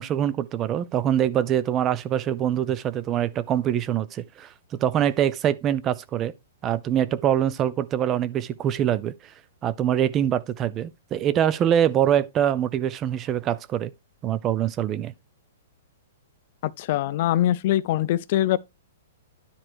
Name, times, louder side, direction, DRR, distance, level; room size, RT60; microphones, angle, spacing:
voice 1, 0.0-6.3 6.6-9.3 9.6-13.9 14.2-15.1, right 10 dB, 15° right, 0.5 m, -24 dB
voice 2, 16.6-18.6, left 13 dB, 35° left, 0.5 m, -23 dB
10.0 x 4.7 x 4.5 m
hypercardioid pair, 175°, 0 cm